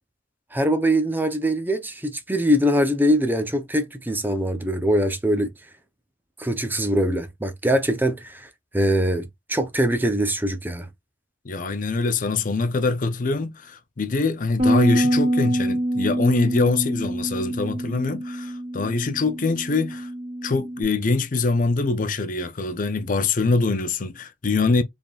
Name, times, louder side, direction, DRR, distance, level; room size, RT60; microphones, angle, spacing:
voice 1, 0.5-5.5 6.4-8.5 8.7-10.9, equal, 10° right, 0.6 m, -22 dB
voice 2, 11.4-20.1 20.4-24.8, left 3 dB, 45° left, 0.6 m, -24 dB
Bass guitar, 14.6-20.8, right 1 dB, 30° right, 2.0 m, -25 dB
4.1 x 3.5 x 2.3 m
head